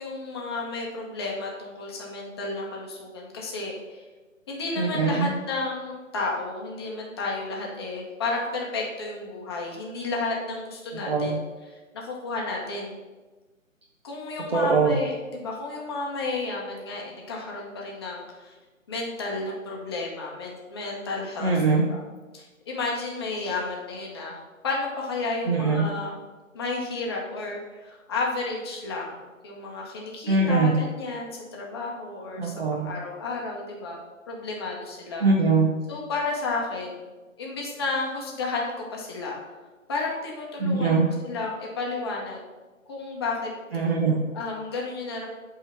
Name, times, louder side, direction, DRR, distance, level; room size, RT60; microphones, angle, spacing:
voice 1, 0.0-4.0 4.5-11.4 11.9-13.0 14.0-18.6 18.9-21.5 21.9-22.0 22.3-26.1 26.5-29.2 29.4-34.0 34.3-35.3 35.9-37.1 37.4-39.4 39.9-42.5 42.9-43.5 44.3-45.3, left 3 dB, 20° left, -2 dB, 1.0 m, -32 dB
voice 2, 4.8-5.3 10.9-11.4 14.5-15.0 21.4-21.9 25.5-25.9 30.3-30.8 32.4-32.9 35.2-35.7 40.6-41.1 43.7-44.2, right 4 dB, 45° right, -1 dB, 1.0 m, -22 dB
7.8 x 3.8 x 5.8 m, 1.2 s
figure-of-eight pair, 150°, 41 cm